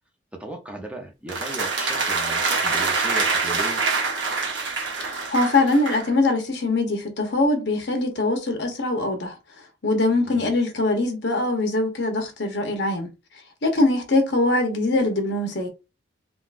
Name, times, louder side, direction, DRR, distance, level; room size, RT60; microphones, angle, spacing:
voice 1, 0.4-3.8 10.2-10.5, right 2 dB, 5° right, 0.6 m, -36 dB
sound 1, 1.3-6.1, right 4 dB, 85° right, 0.9 m, -25 dB
voice 2, 5.1-9.3 9.8-13.1 13.6-15.7, left 2 dB, 75° left, 0.9 m, -22 dB
3.6 x 2.3 x 2.5 m
head